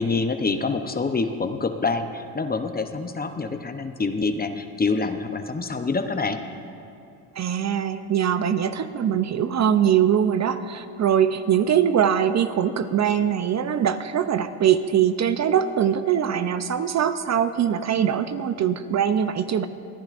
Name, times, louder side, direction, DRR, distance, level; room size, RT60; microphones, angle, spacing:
voice 1, 0.0-6.4, left 4 dB, 20° left, 8 dB, 0.8 m, -26 dB
voice 2, 7.3-19.7, right 9 dB, 40° right, 10 dB, 0.6 m, -22 dB
26.5 x 10.5 x 2.5 m, 2.7 s
supercardioid pair, 75°, 42 cm